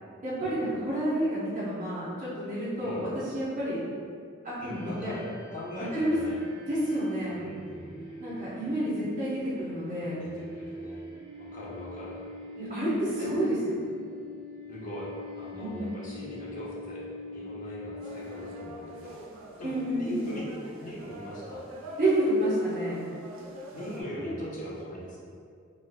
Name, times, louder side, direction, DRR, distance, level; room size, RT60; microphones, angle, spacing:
voice 1, 0.2-3.8 4.4-5.1 5.9-6.2 6.7-7.4 8.2-10.2 12.6-13.9 15.6-15.9 19.6-20.2 22.0-23.0 24.1-24.4, right 1 dB, 40° right, -12 dB, 0.9 m, -29 dB
voice 2, 4.6-6.4 7.3-7.9 10.2-11.0 11.5-12.2 13.2-13.3 14.7-15.1 15.3-17.0 17.3-19.2 19.6-19.7 20.0-20.5 20.8-21.7 23.7-25.2, equal, 40° left, -6 dB, 0.6 m, -40 dB
sound 1, 4.6-19.1, left 2 dB, 20° left, 1.1 m, -44 dB
sound 2, 18.0-24.0, right 1 dB, 90° right, 0.5 m, -44 dB
4.1 x 2.5 x 2.3 m, 2.2 s
head